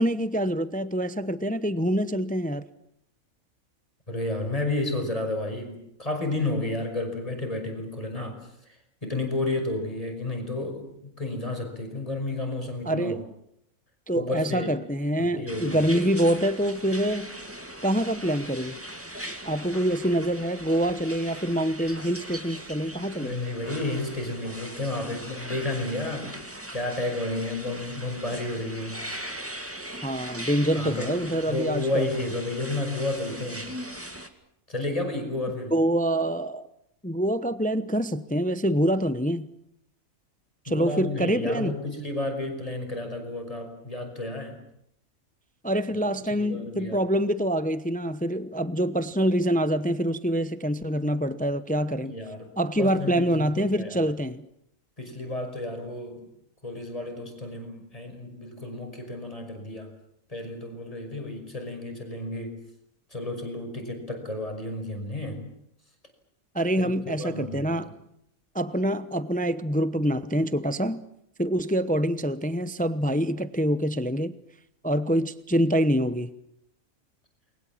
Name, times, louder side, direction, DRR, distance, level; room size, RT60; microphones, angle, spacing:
voice 1, 0.0-2.6 12.9-13.2 14.1-17.3 17.8-18.8 19.4-23.3 30.0-32.1 35.7-36.7 37.0-39.5 40.6-41.8 45.6-52.1 52.6-54.4 66.5-67.9 68.5-71.0 71.4-74.3 74.8-76.3, equal, 5° left, 0.7 m, -25 dB
voice 2, 4.1-13.2 14.1-14.7 15.2-15.8 23.2-29.1 30.7-33.7 34.7-35.8 40.7-44.6 45.9-46.0 46.4-47.0 52.0-52.5 52.8-54.1 55.0-56.2 56.6-59.9 60.3-62.6 63.1-65.4 66.8-66.9 67.2-67.9, left 2 dB, 25° left, 5.8 m, -32 dB
sound 1, 15.5-34.3, right 1 dB, 10° right, 2.2 m, -40 dB
29.0 x 22.5 x 7.4 m
omnidirectional pair, 1.5 m